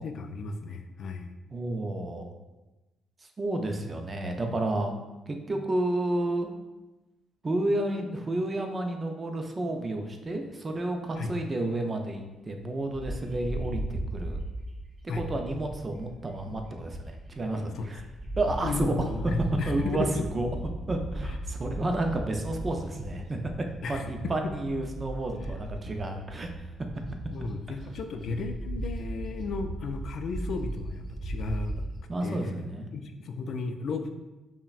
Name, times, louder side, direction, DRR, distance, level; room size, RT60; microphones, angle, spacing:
voice 1, 0.0-1.3 11.2-11.3 15.1-15.2 17.7-17.9 18.6-20.2 21.3-21.4 23.8-24.1 25.3-25.6 27.3-31.8 32.2-32.6 32.9-34.1, left 4 dB, 65° left, 6 dB, 0.3 m, -34 dB
voice 2, 1.5-2.3 3.4-4.9 5.3-6.5 7.4-14.4 15.0-18.0 18.4-18.9 19.7-20.1 20.3-20.5 20.9-23.4 23.9-26.5 32.1-32.9, right 2 dB, 30° right, 4 dB, 0.5 m, -31 dB
Bird, 12.9-17.4 17.8-32.0, right 1 dB, 45° right, 1.3 m, -37 dB
5.4 x 2.1 x 2.4 m, 1.1 s
cardioid pair, 90°, 0 cm